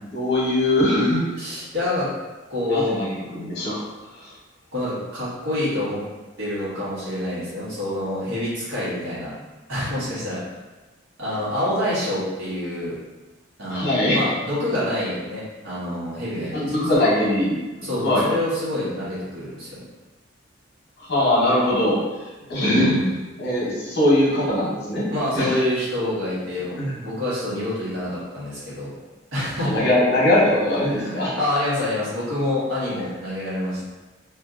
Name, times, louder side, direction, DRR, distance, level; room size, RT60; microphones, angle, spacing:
voice 1, 0.0-1.3 2.7-3.8 4.1-4.3 13.7-14.2 16.5-18.3 21.0-22.9 23.4-25.1 25.3-25.6 26.8-27.0 29.4-31.4, left 1 dB, 55° left, -6 dB, 1.0 m, -21 dB
voice 2, 1.4-2.1 2.5-3.0 4.7-6.0 6.4-9.3 9.7-10.4 11.2-13.0 13.6-17.1 17.8-19.8 22.6-23.1 25.1-28.9 29.3-29.8 30.8-33.8, left 1 dB, 85° right, -10 dB, 1.3 m, -27 dB
2.6 x 2.6 x 2.4 m, 1.2 s
head